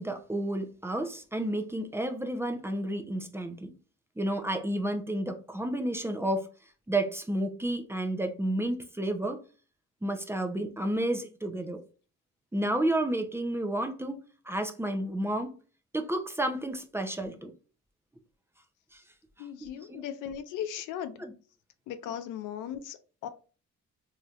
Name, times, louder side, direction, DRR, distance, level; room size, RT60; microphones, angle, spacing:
voice 1, 0.0-3.7 4.2-6.5 6.9-9.4 10.0-11.8 12.5-15.6 15.9-17.5 18.9-19.0 19.6-20.0 21.2-21.3, right 1 dB, 10° right, 0.6 m, -31 dB
voice 2, 19.4-21.2 21.9-23.3, left 9 dB, 85° left, 0.6 m, -37 dB
3.2 x 2.8 x 2.4 m
cardioid pair, 90°, 30 cm